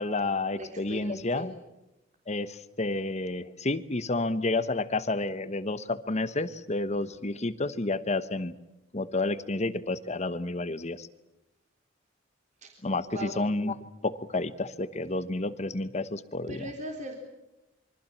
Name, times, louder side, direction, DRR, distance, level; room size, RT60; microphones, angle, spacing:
voice 1, 0.0-1.5 2.3-8.5 8.9-11.1 12.8-13.7 14.0-16.5, left 2 dB, 35° left, 13 dB, 1.1 m, -30 dB
voice 2, 0.5-1.6 7.0-7.2 12.6-12.7 13.1-13.3 16.5-17.2, right 1 dB, 40° right, 2 dB, 3.7 m, -39 dB
26.5 x 24.0 x 7.4 m, 0.94 s
head